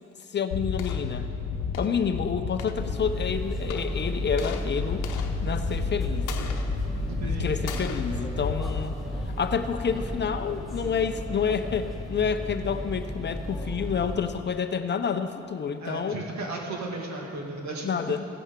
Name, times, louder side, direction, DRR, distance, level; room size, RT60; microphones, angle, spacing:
voice 1, 0.3-1.3 1.8-5.1 5.4-6.3 7.2-8.9 9.4-16.2 17.8-18.3, left 6 dB, 35° left, 9 dB, 0.6 m, -29 dB
sound 1, 0.5-9.6, left 6 dB, 85° left, 0.9 m, -33 dB
sound 2, 2.8-14.2, equal, ahead, 2.1 m, -33 dB
voice 2, 7.1-8.1 15.8-18.1, right 2 dB, 65° right, 0 dB, 1.9 m, -35 dB
16.0 x 8.7 x 3.7 m, 2.9 s
cardioid pair, 90°, 30 cm